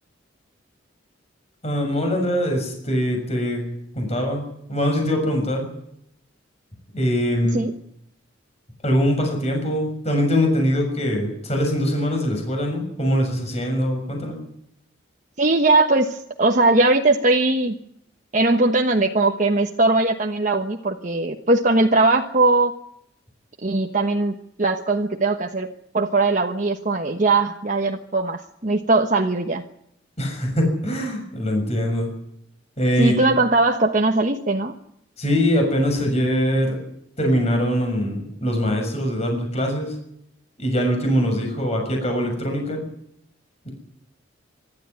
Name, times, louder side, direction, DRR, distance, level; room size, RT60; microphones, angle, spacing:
voice 1, 1.6-3.7 3.9-5.7 6.9-7.6 8.8-14.4 30.2-32.1 32.8-33.3 35.2-36.8 37.2-40.0 40.6-42.8 43.6-43.7, equal, 35° left, 3 dB, 6.7 m, -22 dB
voice 2, 15.4-17.7 18.3-22.7 23.6-25.7 25.9-29.6 33.0-34.7, right 2 dB, 40° right, 2 dB, 1.2 m, -20 dB
24.5 x 13.0 x 9.8 m, 0.75 s
head